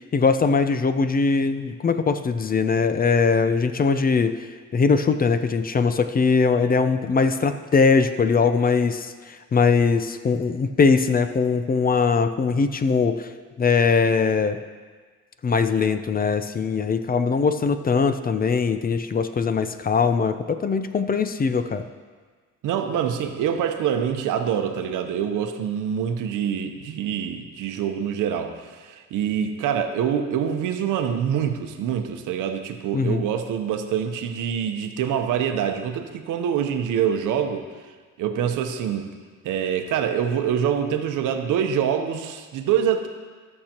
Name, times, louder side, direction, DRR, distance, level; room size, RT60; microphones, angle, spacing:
voice 1, 0.1-4.5 4.7-13.3 13.6-14.6 15.4-21.8 32.9-33.2, left 5 dB, 30° left, 10 dB, 0.5 m, -21 dB
voice 2, 22.6-37.7 38.2-39.1 39.4-43.1, right 8 dB, 85° right, 6 dB, 0.8 m, -25 dB
14.5 x 6.6 x 2.9 m, 1.5 s
cardioid pair, 90°, 30 cm